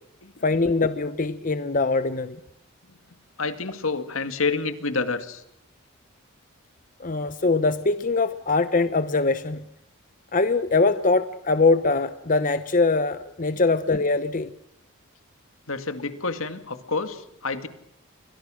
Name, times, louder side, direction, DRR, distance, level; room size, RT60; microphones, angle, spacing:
voice 1, 0.4-2.4 7.0-9.6 10.3-14.5, left 3 dB, 40° left, 11 dB, 1.0 m, -22 dB
voice 2, 3.4-5.4 13.5-13.6 15.7-17.7, left 4 dB, 75° left, 10 dB, 2.2 m, -29 dB
29.5 x 24.5 x 6.4 m, 0.75 s
head